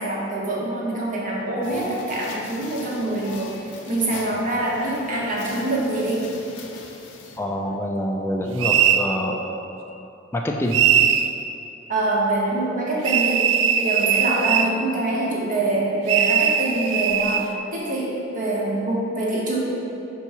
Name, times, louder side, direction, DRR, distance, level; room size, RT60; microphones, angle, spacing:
voice 1, 0.0-6.3 11.9-13.5 13.8-19.6, right 2 dB, 45° right, -4 dB, 1.2 m, -25 dB
sound 1, 1.6-7.4, left 5 dB, 70° left, 0.6 m, -41 dB
voice 2, 7.4-9.4 10.3-10.8, equal, 15° left, 0 dB, 0.4 m, -26 dB
sound 2, 8.6-9.1 10.7-11.3 13.0-14.7 16.1-17.5, right 9 dB, 80° right, 0.3 m, -20 dB
4.8 x 4.5 x 5.5 m, 2.9 s
head